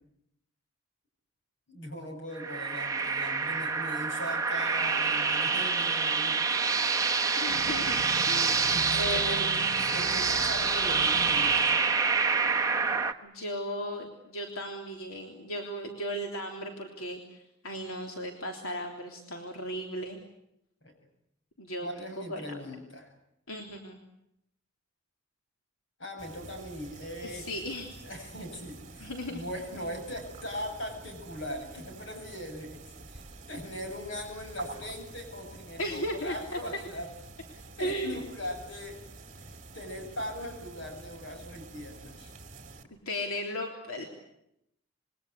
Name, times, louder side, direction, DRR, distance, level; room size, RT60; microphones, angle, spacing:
voice 1, 1.7-6.4 8.7-9.5 9.8-11.8 20.8-20.9 21.8-23.1 26.0-27.5 28.0-32.8 33.1-37.1 37.5-39.0 39.4-42.3, left 1 dB, 60° left, 5 dB, 7.8 m, -40 dB
sound 1, 2.4-13.1, right 5 dB, 15° right, 1.2 m, -27 dB
voice 2, 7.4-9.4 13.2-20.2 21.6-21.9 22.2-22.4 23.5-24.0 27.2-27.9 29.0-29.4 35.8-36.6 37.8-38.2 43.1-44.0, equal, 85° left, 2 dB, 3.5 m, -36 dB
sound 2, 7.5-12.4, right 3 dB, 80° right, 1.0 m, -42 dB
sound 3, 26.2-42.8, right 3 dB, 35° right, 2.6 m, -48 dB
27.0 x 23.0 x 8.3 m, 0.81 s
head